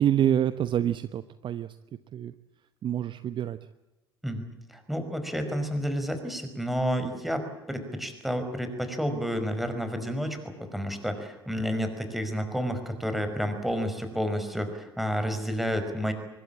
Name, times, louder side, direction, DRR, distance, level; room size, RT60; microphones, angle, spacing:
voice 1, 0.0-1.8 2.1-2.3 2.8-3.6, right 10 dB, 35° right, 13 dB, 0.9 m, -26 dB
voice 2, 4.2-16.1, equal, ahead, 7 dB, 5.4 m, -30 dB
24.5 x 21.5 x 8.8 m, 1.0 s
figure-of-eight pair, 65°, 14 cm